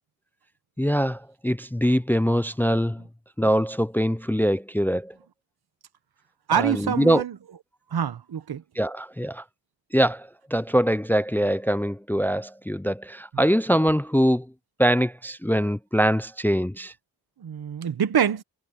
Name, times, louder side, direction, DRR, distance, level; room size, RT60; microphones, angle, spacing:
voice 1, 0.8-3.0 3.4-5.1 6.6-7.2 8.8-9.4 9.9-14.5 14.8-16.9, equal, 5° left, 0.5 m, -23 dB
voice 2, 6.5-7.4 7.9-8.6 13.3-13.4 17.4-18.4, right 8 dB, 75° right, 1.4 m, -25 dB
cardioid pair, 75°, 38 cm